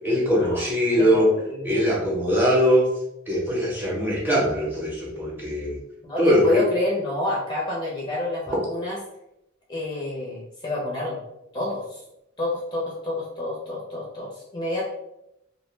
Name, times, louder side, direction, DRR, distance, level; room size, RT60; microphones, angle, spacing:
voice 1, 0.0-1.3 1.6-2.9 3.3-5.8 6.2-6.6, equal, 10° right, -5 dB, 0.8 m, -21 dB
voice 2, 1.0-1.8 6.0-9.0 9.7-11.2 11.5-12.0 12.4-14.8, left 2 dB, 20° left, -4 dB, 0.5 m, -28 dB
2.3 x 2.1 x 3.1 m, 0.85 s
head